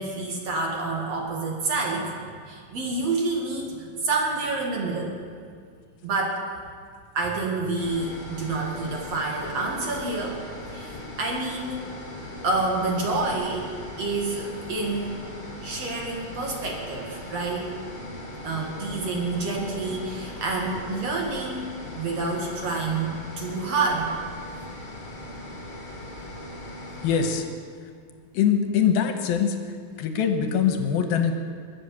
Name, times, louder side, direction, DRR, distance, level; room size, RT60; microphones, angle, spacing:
voice 1, 0.0-2.1 2.5-5.2 6.0-6.4 7.1-10.4 10.7-11.9 12.4-13.7 14.0-15.2 15.6-17.7 18.4-24.1, right 3 dB, 50° right, -1 dB, 2.6 m, -28 dB
sound 1, 7.8-27.3, left 1 dB, 40° left, 5.5 m, -39 dB
voice 2, 27.0-27.5 28.3-29.6 30.0-31.3, left 8 dB, 85° left, 6 dB, 2.8 m, -22 dB
21.5 x 7.8 x 6.9 m, 2.1 s
omnidirectional pair, 4.2 m